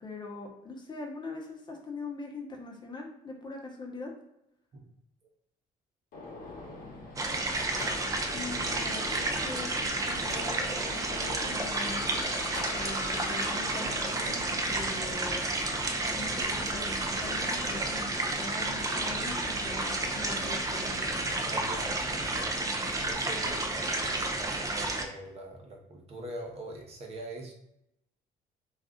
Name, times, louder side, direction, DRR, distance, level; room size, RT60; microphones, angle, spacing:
voice 1, 0.0-4.1 8.2-12.1 12.8-15.8 16.1-21.0, left 2 dB, 25° left, 0 dB, 0.8 m, -42 dB
Gunshot gunfire, 6.1-23.1, left 2 dB, 55° left, 0.9 m, -45 dB
sound 1, 7.2-25.0, right 2 dB, 20° right, 0.4 m, -31 dB
sound 2, 11.5-15.2, left 5 dB, 80° left, 0.6 m, -44 dB
voice 2, 21.4-22.5 23.0-27.5, right 1 dB, 35° right, 1 dB, 0.8 m, -43 dB
2.5 x 2.3 x 3.7 m, 0.81 s
cardioid pair, 110°, 17 cm